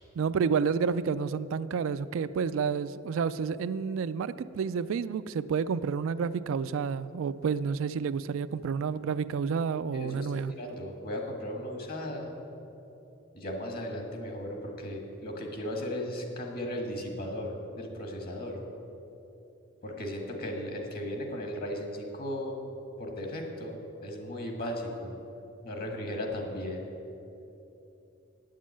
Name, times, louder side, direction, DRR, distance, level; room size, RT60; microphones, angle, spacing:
voice 1, 0.2-10.5, right 6 dB, 70° right, 14 dB, 0.3 m, -30 dB
voice 2, 9.9-12.3 13.3-18.6 19.8-22.6 23.0-25.1 25.6-26.9, left 1 dB, 50° left, 2 dB, 1.7 m, -36 dB
9.3 x 7.4 x 8.6 m, 2.9 s
head